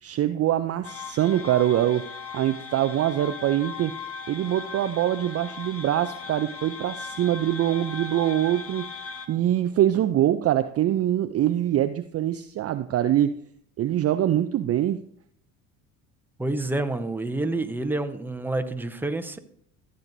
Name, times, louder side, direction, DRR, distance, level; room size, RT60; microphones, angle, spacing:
voice 1, 0.0-2.1 2.3-3.9 4.3-8.9 9.3-13.3 13.8-15.0, right 12 dB, 35° right, 11 dB, 0.4 m, -24 dB
sound 1, 0.8-9.3, left 5 dB, 35° left, 1.2 m, -38 dB
voice 2, 16.4-19.4, right 2 dB, 5° right, 8 dB, 0.9 m, -28 dB
14.5 x 7.7 x 2.6 m, 0.68 s
hypercardioid pair, 65°, 41 cm